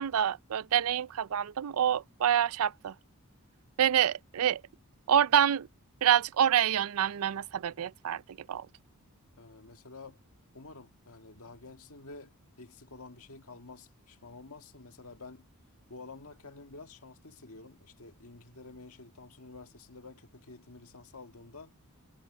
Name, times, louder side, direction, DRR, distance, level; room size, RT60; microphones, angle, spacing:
voice 1, 0.0-2.9 3.8-4.6 5.1-5.7 6.0-8.2 8.5-8.7, right 9 dB, 70° right, 0.4 m, -27 dB
voice 2, 9.4-10.2 10.5-15.5 15.9-21.7, left 3 dB, 70° left, 1.9 m, -50 dB
head